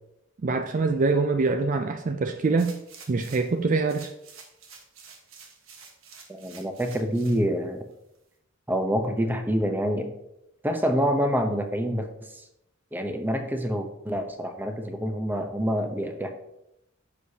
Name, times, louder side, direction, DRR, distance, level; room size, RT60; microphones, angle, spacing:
voice 1, 0.4-2.7 3.1-4.1, right 3 dB, 40° right, 7 dB, 0.4 m, -24 dB
sound 1, 2.6-3.6 3.9-7.4 7.9-8.0, right 5 dB, 90° right, 1.3 m, -49 dB
voice 2, 6.3-7.8 8.7-10.1 10.6-12.1 12.3-12.4 12.9-16.3, equal, 10° right, 5 dB, 0.7 m, -27 dB
9.9 x 6.4 x 2.8 m, 0.83 s
head